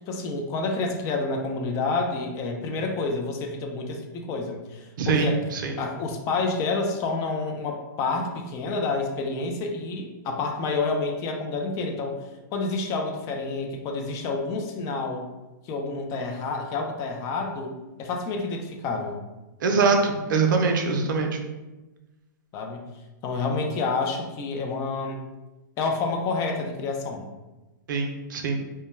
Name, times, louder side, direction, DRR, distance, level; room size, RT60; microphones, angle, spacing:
voice 1, 0.0-5.4 5.8-12.2 12.5-15.3 15.6-17.7 18.0-19.2 22.5-22.8 23.2-25.2 25.8-27.3, left 3 dB, 30° left, 3 dB, 0.3 m, -29 dB
voice 2, 5.0-5.7 19.6-21.4 27.9-28.6, right 4 dB, 70° right, 3 dB, 0.5 m, -23 dB
2.1 x 2.1 x 3.0 m, 1.1 s
hypercardioid pair, 130°, 11 cm